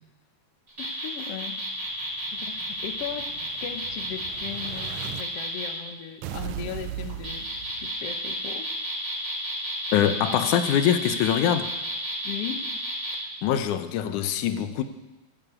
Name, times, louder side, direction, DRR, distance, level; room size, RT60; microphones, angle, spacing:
sound 1, 0.7-5.7 7.0-13.2, equal, 30° right, 4.9 m, -32 dB
voice 1, 0.8-1.6 2.3-3.3 3.6-8.7 12.2-12.8, left 10 dB, 65° left, 8 dB, 1.8 m, -37 dB
Explosion, 1.9-5.2 6.2-8.2, right 12 dB, 80° right, 1.8 m, -39 dB
voice 2, 9.9-11.7 13.4-14.8, left 10 dB, 90° left, 10 dB, 2.3 m, -23 dB
15.5 x 7.3 x 9.4 m, 1.1 s
omnidirectional pair, 3.5 m